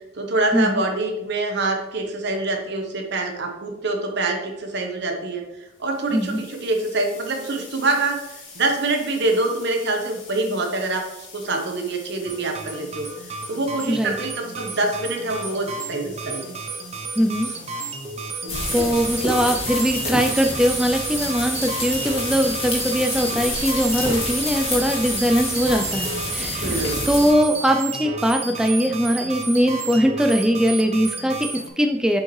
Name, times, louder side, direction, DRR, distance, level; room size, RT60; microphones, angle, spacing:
voice 1, 0.1-5.4 5.8-8.2 8.5-11.0 11.3-13.1 13.5-16.5 18.4-18.9 26.6-27.1, right 2 dB, 65° right, 4 dB, 1.0 m, -25 dB
sound 1, 5.7-20.6, left 4 dB, 65° left, 2.0 m, -45 dB
voice 2, 6.1-6.4 13.9-14.1 17.2-17.5 18.7-26.8 27.1-32.2, equal, 5° right, 4 dB, 0.3 m, -21 dB
sound 2, 12.3-31.7, right 4 dB, 35° right, 0.7 m, -32 dB
sound 3, 18.5-27.3, left 2 dB, 30° left, 2.0 m, -28 dB
7.2 x 5.2 x 3.1 m, 0.93 s
head